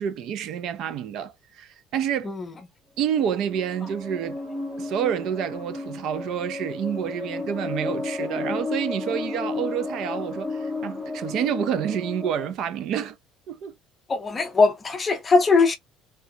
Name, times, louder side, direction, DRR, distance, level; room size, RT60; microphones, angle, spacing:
voice 1, 0.0-2.3 3.0-4.4 4.8-13.2 13.5-13.7, right 9 dB, 50° right, 0.4 m, -28 dB
sound 1, 3.1-12.5, left 3 dB, 5° right, 1.0 m, -33 dB
voice 2, 14.1-15.8, left 4 dB, 20° left, 0.6 m, -20 dB
3.3 x 2.4 x 2.7 m
cardioid pair, 175°, 0 cm